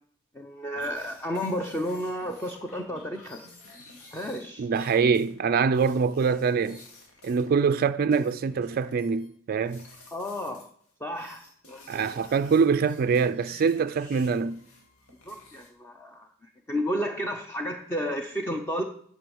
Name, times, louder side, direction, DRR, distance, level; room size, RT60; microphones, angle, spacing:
voice 1, 0.3-3.4 4.1-4.7 10.1-10.7 11.0-12.1 15.3-18.8, equal, 10° left, 0.6 m, -32 dB
sound 1, 0.7-7.8 8.1-9.3 9.6-10.7 11.1-15.7, left 2 dB, 80° left, 2.3 m, -51 dB
voice 2, 4.6-6.8 7.2-9.9 11.9-14.6, right 5 dB, 45° right, 0.3 m, -24 dB
9.1 x 6.3 x 7.1 m
head